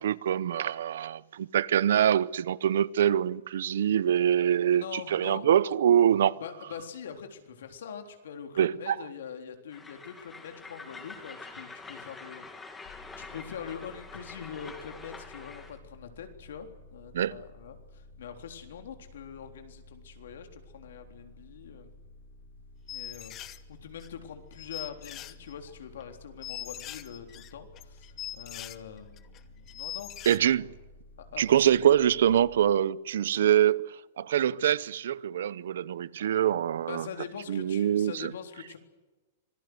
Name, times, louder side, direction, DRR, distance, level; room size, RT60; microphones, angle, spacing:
voice 1, 0.0-6.3 8.6-8.9 17.1-17.4 30.3-30.7 31.4-37.1 37.5-38.3, right 10 dB, 75° right, 0.7 m, -24 dB
voice 2, 4.7-5.5 6.3-21.9 22.9-30.3 31.2-31.7 36.9-38.8, left 8 dB, 80° left, 3.7 m, -43 dB
Train, 9.7-15.8, left 3 dB, 10° left, 2.1 m, -46 dB
sound 1, 12.8-32.6, left 2 dB, 40° left, 3.5 m, -53 dB
sound 2, 22.9-23.6 24.0-24.1 24.5-25.7 26.0-26.1 26.4-28.8 29.2-29.4 29.7-30.4, left 12 dB, 25° left, 1.0 m, -41 dB
26.0 x 19.0 x 8.0 m
supercardioid pair, 165°, 0 cm